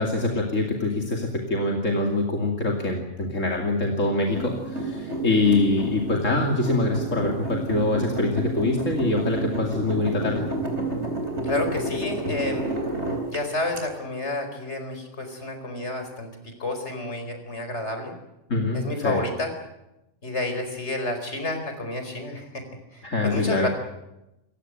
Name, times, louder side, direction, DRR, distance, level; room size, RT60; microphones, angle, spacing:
voice 1, 0.0-10.5 18.5-19.2 23.0-23.7, left 2 dB, 85° left, 1 dB, 3.0 m, -24 dB
sound 1, 4.3-13.8, right 2 dB, 60° right, 4.5 m, -30 dB
voice 2, 11.4-12.7 13.3-16.3 16.6-18.2 18.7-19.5 20.2-22.6 22.9-23.7, left 2 dB, 60° left, 6 dB, 4.9 m, -30 dB
27.5 x 15.5 x 9.1 m, 0.92 s
omnidirectional pair, 1.3 m